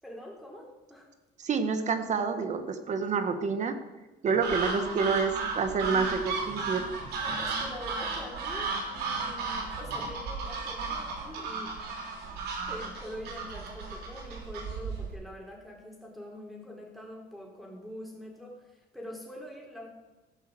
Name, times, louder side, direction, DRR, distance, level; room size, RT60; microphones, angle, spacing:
voice 1, 0.0-1.1 4.9-5.0 7.2-11.7 12.2-19.9, left 1 dB, ahead, -2 dB, 4.0 m, -44 dB
voice 2, 1.4-3.8 4.2-6.9, right 5 dB, 45° right, 8 dB, 1.5 m, -28 dB
sound 1, 4.4-15.1, right 4 dB, 70° right, 3.6 m, -34 dB
15.0 x 5.7 x 7.8 m, 1.1 s
cardioid pair, 110°, 17 cm